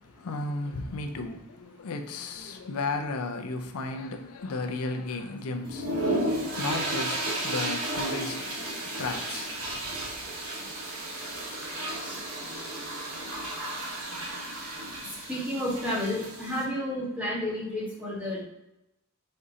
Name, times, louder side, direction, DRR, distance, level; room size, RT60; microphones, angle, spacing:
voice 1, 0.0-10.2, left 3 dB, 90° left, 0.5 m, -35 dB
sound 1, 5.6-16.6, right 1 dB, 75° right, 1.1 m, -33 dB
voice 2, 15.3-18.4, left 1 dB, 5° right, 1.4 m, -31 dB
4.4 x 3.7 x 2.7 m
head